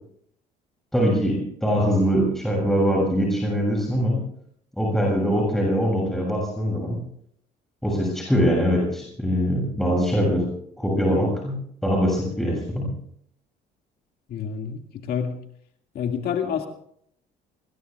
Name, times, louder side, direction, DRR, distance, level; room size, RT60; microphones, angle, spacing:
voice 1, 0.9-4.2 4.8-7.0 7.8-10.5 10.8-12.9, equal, ahead, -2 dB, 7.0 m, -22 dB
voice 2, 14.3-15.4 15.9-16.7, left 7 dB, 65° left, 4 dB, 2.1 m, -28 dB
26.5 x 21.5 x 2.4 m, 0.67 s
cardioid pair, 110°, 17 cm